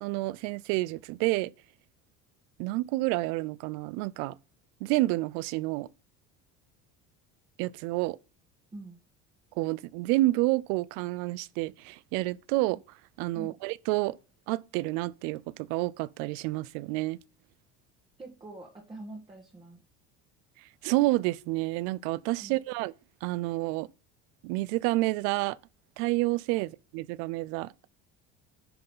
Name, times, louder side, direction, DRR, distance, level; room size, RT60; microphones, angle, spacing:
voice 1, 0.0-1.5 2.6-4.4 4.8-5.9 7.6-8.2 9.6-12.8 13.2-14.2 14.5-17.2 20.8-22.9 23.2-23.9 24.4-25.6 26.0-27.7, right 19 dB, 90° right, 0.5 m, -29 dB
voice 2, 18.2-19.8 22.4-22.6, right 2 dB, 15° right, 1.5 m, -44 dB
10.0 x 3.9 x 5.4 m
cardioid pair, 140°, 30 cm